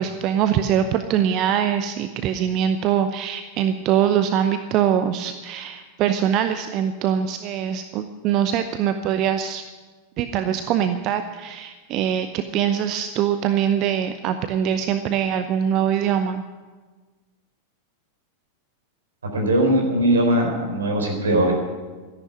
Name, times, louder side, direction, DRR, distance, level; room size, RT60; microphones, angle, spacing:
voice 1, 0.0-9.6 10.2-16.4, right 9 dB, 40° right, 9 dB, 0.7 m, -23 dB
voice 2, 19.3-21.5, right 1 dB, 70° right, 2 dB, 4.2 m, -20 dB
13.5 x 11.0 x 9.6 m, 1.3 s
figure-of-eight pair, 90°, 0 cm